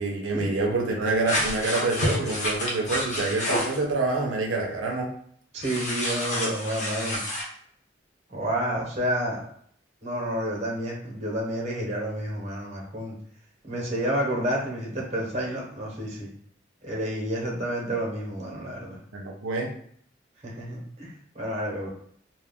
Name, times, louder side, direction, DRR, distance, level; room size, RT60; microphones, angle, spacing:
voice 1, 0.0-5.1 19.1-19.7, right 3 dB, 85° right, 1 dB, 0.5 m, -27 dB
sound 1, 1.3-3.8 5.6-7.5, left 1 dB, 35° left, 0.6 m, -29 dB
voice 2, 5.5-7.2 8.3-9.4 10.0-13.2 13.6-16.3 16.8-19.0 20.4-21.9, right 1 dB, 35° right, -2 dB, 0.7 m, -30 dB
2.2 x 2.1 x 3.4 m, 0.63 s
head